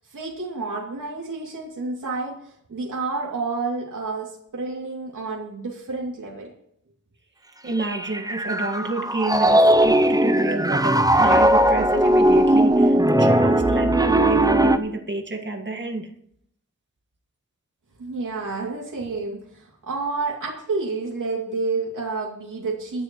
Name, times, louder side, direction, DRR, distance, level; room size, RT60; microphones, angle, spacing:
voice 1, 0.1-6.5 18.0-23.0, right 3 dB, 75° right, -3 dB, 2.8 m, -29 dB
voice 2, 7.6-16.1, right 2 dB, 35° right, 2 dB, 1.8 m, -29 dB
Piano, 7.8-14.8, right 1 dB, 10° right, 0.6 m, -18 dB
23.5 x 10.5 x 3.2 m, 0.71 s
wide cardioid pair, 120°, 31 cm